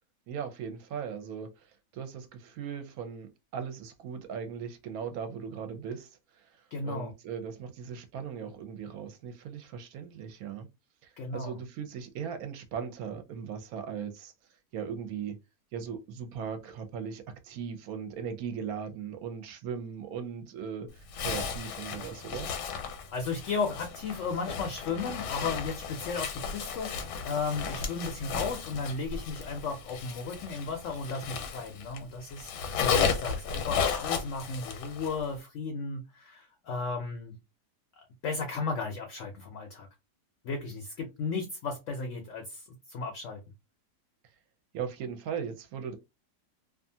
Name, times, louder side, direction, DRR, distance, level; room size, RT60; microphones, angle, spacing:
voice 1, 0.3-1.5 1.9-6.1 6.8-10.7 11.0-14.3 14.7-15.4 15.7-22.5 44.7-46.0, right 7 dB, 70° right, 1.0 m, -38 dB
voice 2, 6.7-7.1 11.2-11.6 23.1-32.5 32.8-37.4 38.0-39.9 40.4-43.4, left 4 dB, 65° left, 0.7 m, -35 dB
Zipper (clothing), 21.1-32.0 32.3-35.3, left 6 dB, 85° left, 1.2 m, -34 dB
2.6 x 2.4 x 2.7 m
omnidirectional pair, 1.8 m